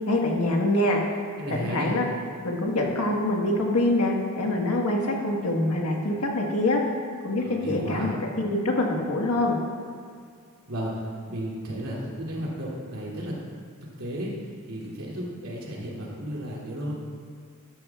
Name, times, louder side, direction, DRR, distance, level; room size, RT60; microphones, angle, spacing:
voice 1, 0.1-1.0 1.7-2.1 2.4-6.8 7.2-9.6, left 1 dB, 85° left, 0 dB, 1.6 m, -25 dB
voice 2, 1.4-1.9 7.4-8.1 10.7-13.4 14.0-16.9, equal, 80° right, -5 dB, 2.8 m, -33 dB
13.5 x 11.5 x 2.4 m, 2.2 s
head